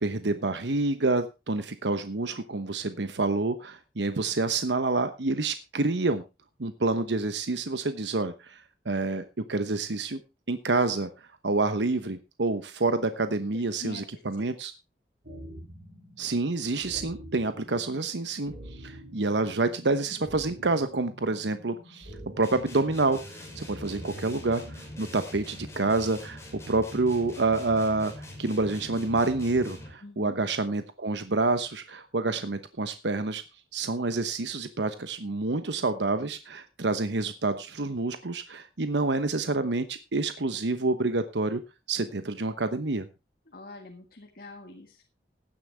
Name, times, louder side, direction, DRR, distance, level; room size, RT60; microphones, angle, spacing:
voice 1, 0.0-6.2 6.6-8.6 8.8-10.2 10.5-11.1 11.4-14.7 16.2-33.4 33.7-41.6 41.9-43.1, right 3 dB, 80° right, 10 dB, 1.0 m, -28 dB
voice 2, 13.7-14.5 30.0-30.4 43.5-45.0, left 2 dB, 55° left, 3 dB, 1.8 m, -45 dB
sound 1, 15.2-25.2, right 1 dB, 55° right, 6.7 m, -47 dB
sound 2, 22.4-30.1, left 1 dB, 15° left, 5.3 m, -43 dB
16.0 x 10.5 x 3.4 m, 0.26 s
head